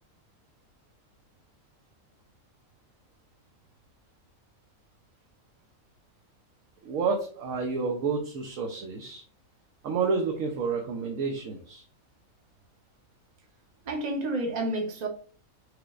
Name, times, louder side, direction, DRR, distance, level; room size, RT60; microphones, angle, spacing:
voice 1, 6.8-9.2 9.8-11.8, right 4 dB, 75° right, 1.1 m, -29 dB
voice 2, 13.8-15.1, right 2 dB, 35° right, 0.8 m, -30 dB
4.9 x 3.1 x 2.4 m
omnidirectional pair, 1.4 m